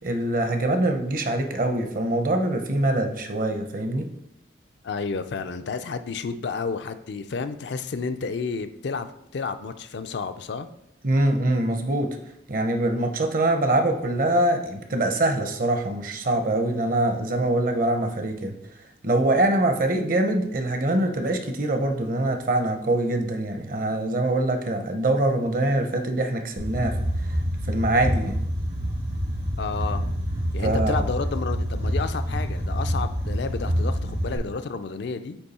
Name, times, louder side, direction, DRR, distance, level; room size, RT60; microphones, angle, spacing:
voice 1, 0.0-4.1 11.0-12.2 12.5-18.6 19.0-27.0 27.3-27.4 27.7-28.4 30.6-31.1, right 1 dB, 45° right, 5 dB, 0.7 m, -24 dB
voice 2, 4.8-9.1 9.3-10.7 29.6-30.1 30.5-35.4, left 4 dB, 65° left, 9 dB, 0.4 m, -31 dB
sound 1, 26.6-34.4, equal, 80° right, 2.5 m, -27 dB
8.1 x 3.1 x 4.2 m, 0.77 s
head